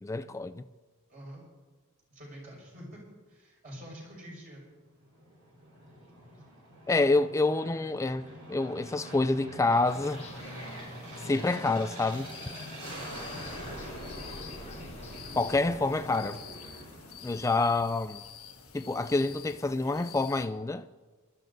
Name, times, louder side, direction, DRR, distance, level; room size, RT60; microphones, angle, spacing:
voice 1, 0.0-0.7 6.9-8.2 8.5-10.2 11.2-12.3 15.4-16.4 17.2-18.2 18.7-20.9, left 3 dB, 15° left, 0.3 m, -27 dB
voice 2, 1.1-1.4 2.1-3.0 3.3-4.6 6.3-6.4 12.8-13.1, equal, 40° right, 5.5 m, -46 dB
Aircraft, 5.0-17.8, right 1 dB, 75° right, 4.5 m, -44 dB
sound 1, 9.8-16.4, left 3 dB, 30° left, 1.3 m, -49 dB
sound 2, 12.1-20.5, left 8 dB, 85° left, 1.4 m, -49 dB
26.0 x 12.5 x 2.7 m
head